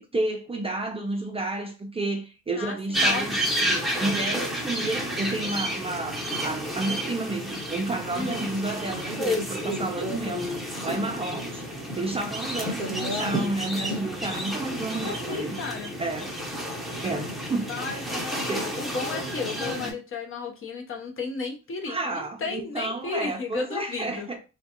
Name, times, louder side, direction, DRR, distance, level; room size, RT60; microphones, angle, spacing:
voice 1, 0.0-10.5 10.8-15.6 16.0-16.4 16.7-18.0 18.5-18.7 21.9-24.4, right 2 dB, 20° right, 0.4 m, -31 dB
voice 2, 2.5-3.3 8.1-8.5 14.9-15.9 17.7-24.3, left 4 dB, 45° left, 0.8 m, -34 dB
sound 1, 2.9-19.9, equal, ahead, 0.8 m, -30 dB
2.4 x 2.2 x 2.8 m
cardioid pair, 90°, 30 cm